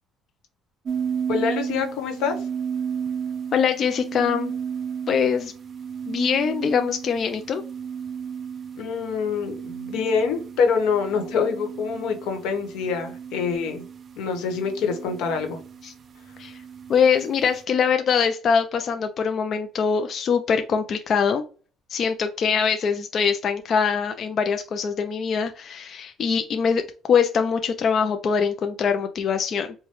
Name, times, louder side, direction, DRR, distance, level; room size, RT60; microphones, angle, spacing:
sound 1, 0.9-17.6, right 7 dB, 40° right, 0.4 m, -34 dB
voice 1, 1.3-2.4 8.8-13.8 14.2-15.6, left 5 dB, 85° left, 4 dB, 1.0 m, -25 dB
voice 2, 3.5-4.5 5.1-5.5 6.1-7.6 15.8-15.9 16.4-16.6 16.9-21.4 21.9-26.8 27.1-29.7, left 6 dB, 45° left, 7 dB, 0.4 m, -23 dB
4.8 x 2.2 x 3.0 m, 0.37 s
cardioid pair, 125°, 0 cm